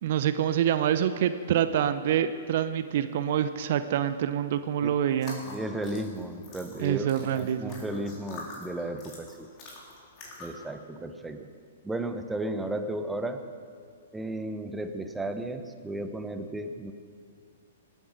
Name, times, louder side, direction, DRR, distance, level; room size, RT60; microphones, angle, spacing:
voice 1, 0.0-5.4 6.8-7.8, right 10 dB, 50° right, 11 dB, 0.6 m, -26 dB
sound 1, 5.1-10.7, left 2 dB, 35° left, 4.0 m, -46 dB
voice 2, 5.5-7.1 7.3-9.5 10.4-11.5 11.8-13.4 14.1-16.9, right 1 dB, 5° right, 7 dB, 0.9 m, -34 dB
18.5 x 9.1 x 6.5 m, 2.2 s
figure-of-eight pair, 115°, 0 cm